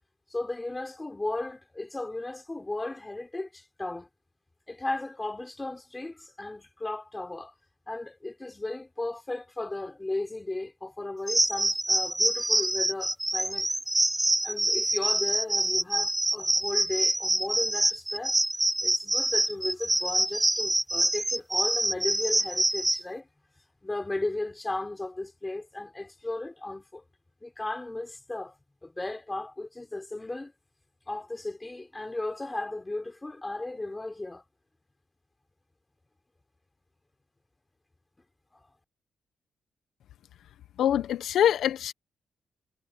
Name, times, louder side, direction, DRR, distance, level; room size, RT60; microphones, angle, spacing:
voice 1, 0.3-4.1 4.7-7.5 7.9-13.7 14.4-18.4 18.8-23.3 23.8-27.0 27.4-28.5 28.8-30.5 31.1-34.4, left 2 dB, 10° left, 3.8 m, -35 dB
sound 1, 11.3-23.0, right 1 dB, 10° right, 1.9 m, -26 dB
voice 2, 40.8-41.9, left 10 dB, 85° left, 0.7 m, -24 dB
wide cardioid pair, 175°, 0 cm